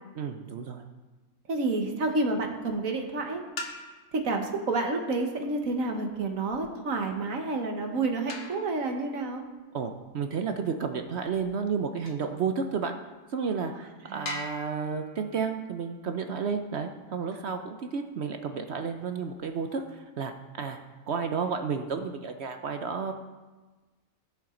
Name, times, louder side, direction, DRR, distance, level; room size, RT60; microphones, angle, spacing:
voice 1, 0.2-0.8 9.7-13.0 13.3-13.7 14.1-20.3 20.6-20.8 21.1-23.1, right 6 dB, 60° right, 6 dB, 0.9 m, -31 dB
voice 2, 1.5-3.4 4.1-9.4 14.1-14.4, right 3 dB, 85° right, 3 dB, 1.7 m, -29 dB
sound 1, 2.0-2.5 3.4-4.3 5.9-12.4 13.0-13.1 13.6-13.7 14.3-16.9 19.0-20.0, left 2 dB, 60° left, 1.3 m, -44 dB
17.5 x 7.3 x 3.8 m, 1.3 s
omnidirectional pair, 1.4 m